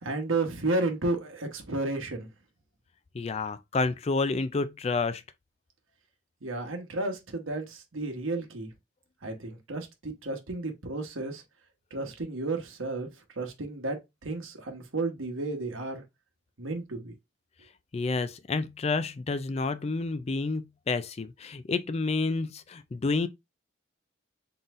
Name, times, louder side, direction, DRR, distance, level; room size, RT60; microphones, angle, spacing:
voice 1, 0.0-2.3 6.4-8.7 9.2-11.4 11.9-13.1 13.4-16.0 16.6-17.1, right 2 dB, 85° right, 1.1 m, -32 dB
voice 2, 3.1-5.2 17.9-23.3, left 3 dB, 30° left, 0.3 m, -29 dB
4.0 x 3.8 x 2.5 m
head